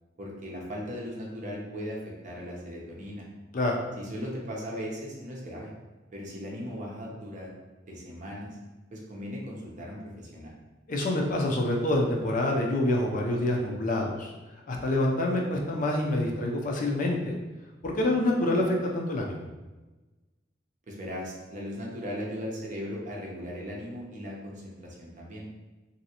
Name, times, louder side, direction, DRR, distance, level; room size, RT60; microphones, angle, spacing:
voice 1, 0.2-3.3 4.0-5.7 6.1-7.5 7.9-8.6 8.9-10.5 20.9-25.5, equal, 45° right, -2 dB, 0.7 m, -38 dB
voice 2, 10.9-14.3 14.7-17.3 17.8-19.4, left 1 dB, 45° left, 0 dB, 0.5 m, -26 dB
3.1 x 2.6 x 2.8 m, 1.2 s
head